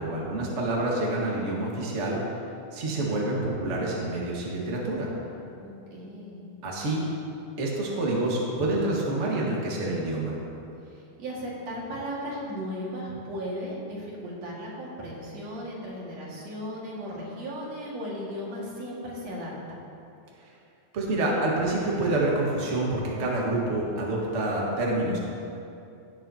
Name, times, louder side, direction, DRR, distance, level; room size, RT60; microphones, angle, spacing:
voice 1, 0.0-2.2 2.7-5.1 6.6-7.1 7.6-10.3 20.9-25.2, right 2 dB, 75° right, -3 dB, 0.6 m, -27 dB
voice 2, 5.6-6.5 10.8-19.8, equal, 55° right, -5 dB, 2.9 m, -36 dB
16.5 x 9.0 x 2.8 m, 2.6 s
omnidirectional pair, 4.0 m